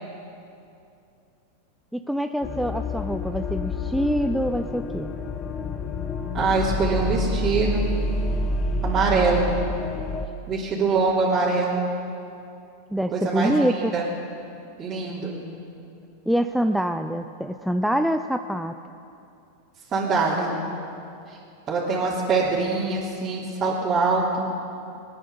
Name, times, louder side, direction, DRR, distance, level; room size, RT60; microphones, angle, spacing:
voice 1, 1.9-5.1 12.9-13.9 16.3-18.7, equal, ahead, 7 dB, 0.5 m, -25 dB
sound 1, 2.4-10.3, left 2 dB, 30° left, 1.2 m, -28 dB
voice 2, 6.3-7.8 8.8-9.5 10.5-11.8 13.1-13.7 13.9-14.0 14.8-15.4 19.9-20.6 21.3-21.4 21.7-24.5, right 4 dB, 30° right, -8 dB, 3.2 m, -23 dB
19.5 x 10.5 x 7.0 m, 2.7 s
hypercardioid pair, 105°, 0 cm